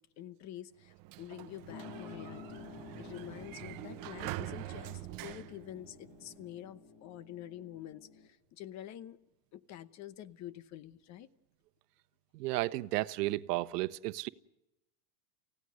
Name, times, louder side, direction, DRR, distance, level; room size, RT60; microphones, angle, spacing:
voice 1, 0.2-2.6 3.0-9.2 9.5-11.3, left 12 dB, 35° left, 1.0 m, -47 dB
Sliding door, 0.8-6.4, right 18 dB, 45° right, 0.9 m, -45 dB
sound 1, 1.7-8.3, left 4 dB, 60° left, 4.5 m, -51 dB
voice 2, 12.3-14.3, right 18 dB, 90° right, 0.9 m, -33 dB
29.5 x 16.5 x 6.4 m
supercardioid pair, 140°, 46 cm